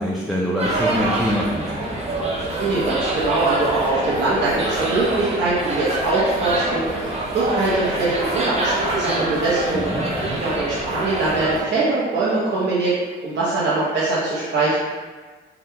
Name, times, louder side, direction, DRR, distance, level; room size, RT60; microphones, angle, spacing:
voice 1, 0.0-2.0 9.7-10.4, equal, ahead, -5 dB, 0.4 m, -25 dB
sound 1, 0.6-11.6, right 2 dB, 30° right, 0.8 m, -25 dB
voice 2, 2.6-9.8 10.4-12.9 13.2-14.8, right 3 dB, 65° right, -9 dB, 0.7 m, -22 dB
3.5 x 2.3 x 2.7 m, 1.4 s
cardioid pair, 90°, 20 cm